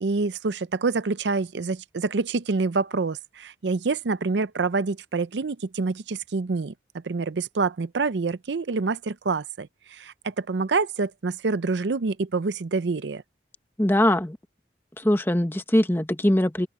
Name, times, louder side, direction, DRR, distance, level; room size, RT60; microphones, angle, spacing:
voice 1, 0.0-13.2, right 4 dB, 85° right, 0.6 m, -27 dB
voice 2, 13.8-14.4 15.0-16.7, left 1 dB, 15° left, 1.1 m, -21 dB
open air
head